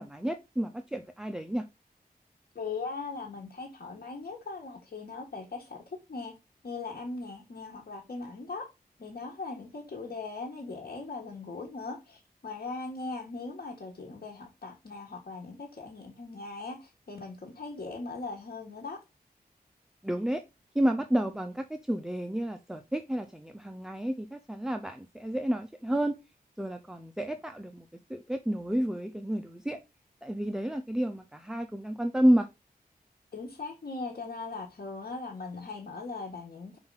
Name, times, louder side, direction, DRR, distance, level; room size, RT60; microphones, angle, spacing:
voice 1, 0.0-1.7 20.0-20.4 20.7-26.2 26.6-27.8 28.1-29.8 30.2-32.5, right 1 dB, 5° right, 0.6 m, -30 dB
voice 2, 2.5-6.3 6.6-8.7 9.0-19.0 33.3-36.8, left 3 dB, 75° left, 1.5 m, -39 dB
5.7 x 4.8 x 3.9 m
wide cardioid pair, 80°, 16 cm